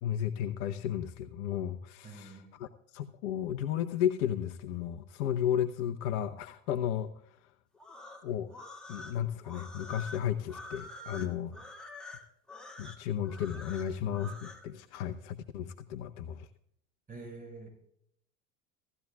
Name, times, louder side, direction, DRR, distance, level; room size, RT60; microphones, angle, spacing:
voice 1, 0.0-7.1 8.2-8.5 8.9-11.6 12.8-16.5, left 10 dB, 55° left, 8 dB, 0.9 m, -34 dB
voice 2, 2.0-2.6 17.1-17.7, right 3 dB, 20° right, 2 dB, 6.2 m, -46 dB
sound 1, 7.7-14.7, left 1 dB, ahead, 2.1 m, -47 dB
16.5 x 14.0 x 2.3 m, 0.69 s
hypercardioid pair, 85°, 41 cm